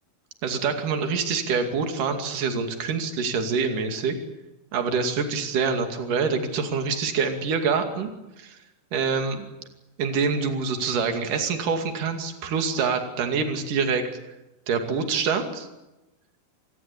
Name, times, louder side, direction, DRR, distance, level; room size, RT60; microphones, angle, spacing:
voice 1, 0.4-4.2 4.7-8.1 8.4-8.6 8.9-9.5 10.0-14.0 14.7-15.7, right 5 dB, 55° right, 5 dB, 3.9 m, -25 dB
27.0 x 20.0 x 8.5 m, 1.0 s
omnidirectional pair, 4.5 m